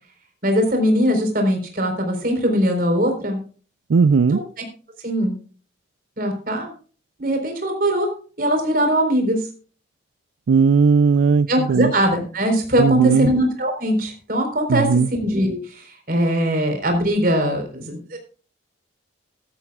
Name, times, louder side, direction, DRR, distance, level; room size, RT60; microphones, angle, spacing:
voice 1, 0.4-3.4 4.3-4.4 5.0-5.4 6.2-6.7 7.2-8.1 8.4-9.5 11.5-18.2, equal, 45° right, 4 dB, 4.1 m, -21 dB
voice 2, 3.9-4.4 10.5-11.9 12.8-13.3 14.7-15.1, right 5 dB, 80° right, 14 dB, 0.4 m, -17 dB
15.5 x 13.0 x 2.4 m, 0.39 s
head